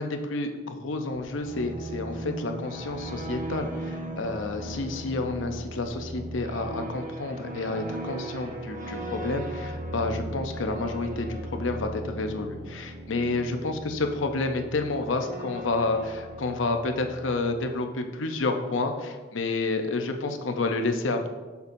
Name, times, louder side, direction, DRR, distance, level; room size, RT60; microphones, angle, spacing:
voice 1, 0.0-21.3, left 3 dB, 80° left, 6 dB, 0.7 m, -30 dB
sound 1, 1.1-17.8, right 1 dB, 45° right, 0.9 m, -37 dB
6.9 x 6.8 x 2.6 m, 1.3 s
head